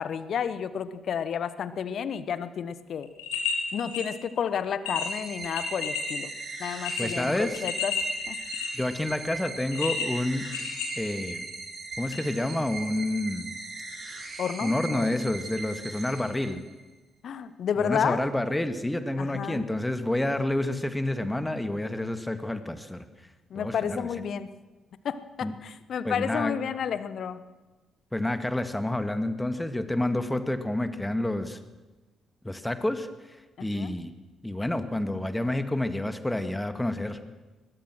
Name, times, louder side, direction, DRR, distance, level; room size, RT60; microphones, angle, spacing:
voice 1, 0.0-3.1 3.7-6.3 6.6-8.0 8.3-8.4 14.4-15.1 17.2-18.3 19.2-19.6 23.5-24.5 25.0-27.4 33.6-33.9, left 7 dB, 55° left, 14 dB, 1.2 m, -31 dB
sound 1, 3.0-4.1 4.5-4.6 4.9-6.2 6.6-8.9 9.7-11.5 12.1-12.2, left 5 dB, 75° left, 2.8 m, -32 dB
sound 2, 4.9-16.9, right 3 dB, 45° right, 6.0 m, -39 dB
voice 2, 7.0-7.6 8.7-10.5 11.0-11.5 12.0-13.5 14.6-16.6 17.8-23.1 23.6-24.1 25.4-25.6 26.0-26.6 28.1-31.6 32.4-34.1 34.4-37.2, left 1 dB, 10° left, 9 dB, 2.1 m, -29 dB
21.5 x 21.0 x 6.3 m, 1.2 s
figure-of-eight pair, 40°, 0 cm